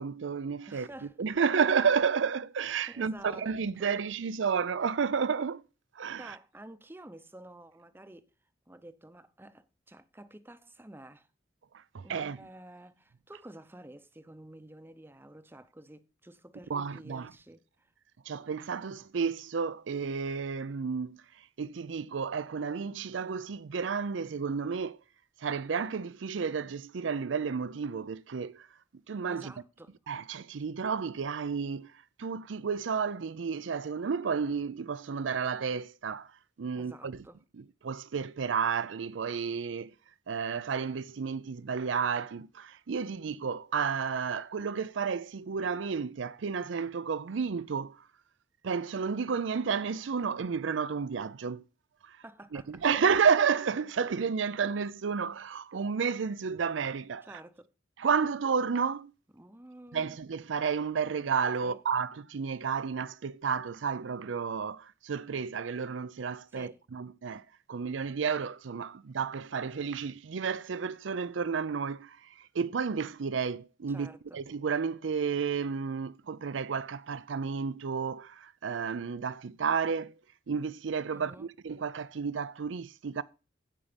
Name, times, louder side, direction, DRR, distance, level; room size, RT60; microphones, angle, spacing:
voice 1, 0.0-0.9 1.2-5.6 6.0-6.4 11.9-12.4 16.7-17.3 18.3-21.2 21.6-25.0 25.4-28.7 29.1-29.5 30.1-31.9 32.2-36.3 36.6-37.2 37.8-39.9 40.3-48.0 48.6-51.6 52.0-52.2 52.5-57.3 58.0-59.1 59.9-67.4 67.7-72.2 72.5-80.1 80.5-83.2, right 6 dB, 85° right, 0.5 m, -31 dB
voice 2, 0.7-1.2 2.9-3.5 3.8-4.1 6.2-8.3 8.7-11.3 12.0-17.9 29.3-29.9 36.8-37.4 52.2-53.0 57.2-57.7 59.3-60.2 61.6-61.8 66.5-66.8 73.9-74.4 81.1-81.5, right 1 dB, 10° right, 0.7 m, -50 dB
16.0 x 5.4 x 5.1 m
head